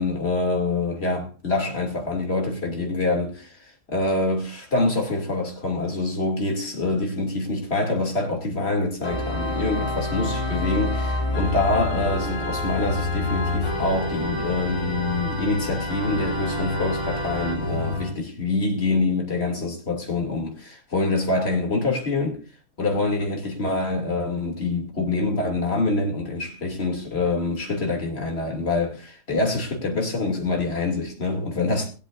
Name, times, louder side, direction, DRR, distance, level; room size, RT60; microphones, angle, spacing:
voice 1, 0.0-3.5 3.9-22.4 22.8-31.9, left 2 dB, 40° left, 2.7 m, -25 dB
Organ, 9.0-18.1, left 2 dB, 65° left, 3.6 m, -27 dB
20.5 x 8.4 x 2.5 m
omnidirectional pair, 1.7 m